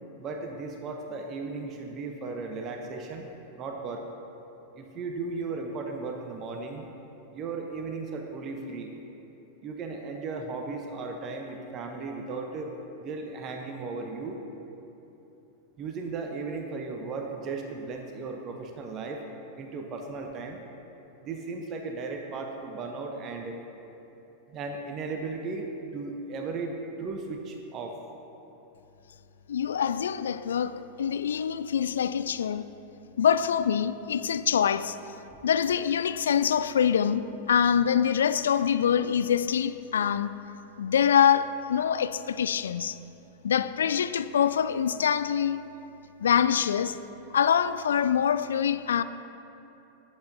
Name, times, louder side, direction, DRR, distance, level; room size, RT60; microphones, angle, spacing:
voice 1, 0.2-3.3 3.6-4.1 4.7-6.9 7.3-8.9 9.6-12.7 13.0-14.4 15.8-19.2 19.6-20.6 21.2-23.6 24.5-25.7 25.9-28.0, right 4 dB, 35° right, 0.9 m, -36 dB
voice 2, 29.5-32.7 33.2-35.0 35.4-40.3 40.8-43.0 43.4-45.6 46.2-47.0 47.3-49.0, left 8 dB, 65° left, 0.3 m, -25 dB
19.5 x 8.0 x 2.8 m
figure-of-eight pair, 90°, 0 cm